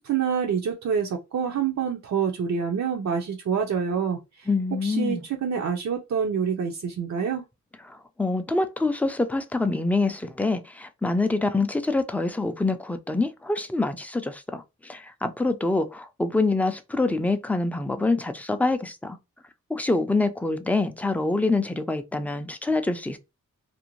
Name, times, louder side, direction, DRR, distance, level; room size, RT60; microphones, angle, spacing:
voice 1, 0.0-4.5 4.8-7.4, right 7 dB, 60° right, 0.5 m, -27 dB
voice 2, 4.5-5.2 7.8-19.2 19.7-23.2, left 3 dB, 5° left, 0.3 m, -25 dB
2.5 x 2.1 x 2.9 m
wide cardioid pair, 90°, 31 cm